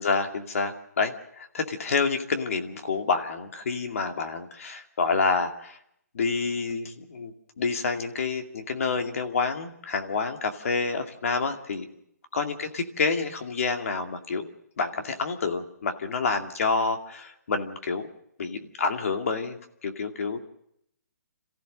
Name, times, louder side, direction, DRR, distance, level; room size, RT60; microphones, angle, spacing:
voice 1, 0.0-5.8 6.1-11.9 12.3-14.5 14.8-18.1 18.4-20.4, left 4 dB, 55° left, 5 dB, 2.4 m, -28 dB
27.5 x 15.0 x 6.6 m, 0.73 s
hypercardioid pair, 170°, 9 cm